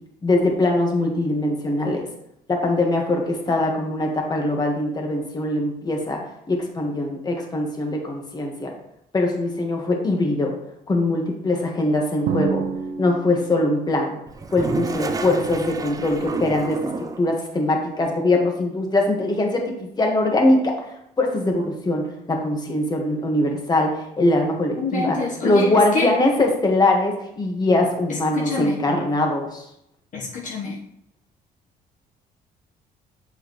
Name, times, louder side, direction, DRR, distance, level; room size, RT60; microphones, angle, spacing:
voice 1, 0.2-2.0 2.5-6.2 6.5-8.7 9.1-10.5 10.9-12.6 13.0-14.2 14.5-16.8 17.2-20.7 21.2-29.6, left 2 dB, 25° left, 1 dB, 1.5 m, -22 dB
Drum, 12.3-14.0, right 7 dB, 80° right, 0.8 m, -28 dB
Toilet flush, 14.3-17.3, right 3 dB, 20° right, 0.5 m, -30 dB
voice 2, 24.8-25.7 25.9-26.1 28.1-28.8 30.1-30.8, left 4 dB, 50° left, -3 dB, 1.2 m, -27 dB
7.7 x 4.8 x 3.2 m, 0.77 s
cardioid pair, 110°, 17 cm